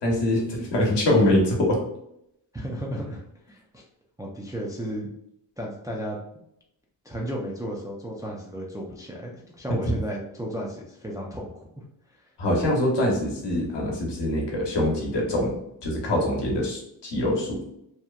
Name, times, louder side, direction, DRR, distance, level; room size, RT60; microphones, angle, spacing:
voice 1, 0.0-1.8 9.9-10.0 12.4-15.5 15.8-17.6, left 1 dB, 70° left, -1 dB, 0.9 m, -24 dB
voice 2, 2.5-3.2 3.5-3.8 4.2-5.1 5.6-6.2 7.0-11.7 12.1-12.2, equal, 10° right, -2 dB, 0.3 m, -34 dB
2.8 x 2.1 x 2.3 m, 0.78 s
cardioid pair, 95°, 44 cm